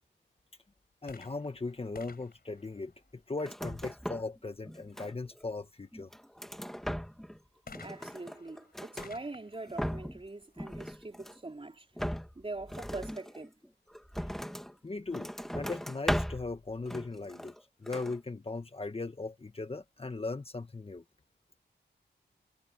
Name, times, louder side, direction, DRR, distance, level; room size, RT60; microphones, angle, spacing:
voice 1, 1.0-6.1 14.8-17.5 17.8-21.0, left 3 dB, 30° left, 1.5 m, -38 dB
sound 1, 1.1-3.6 7.7-11.3 12.1-12.2, left 4 dB, 55° left, 4.9 m, -55 dB
sound 2, 3.4-4.4 4.6-5.4 5.9-7.4 7.7-9.1 9.5-10.3 10.6-11.5 12.0-14.7 15.1-16.5 16.9-17.6 17.9-18.2, equal, ahead, 1.7 m, -38 dB
voice 2, 7.8-11.9 12.3-13.5, right 2 dB, 30° right, 3.9 m, -43 dB
wide cardioid pair, 85°, 19 cm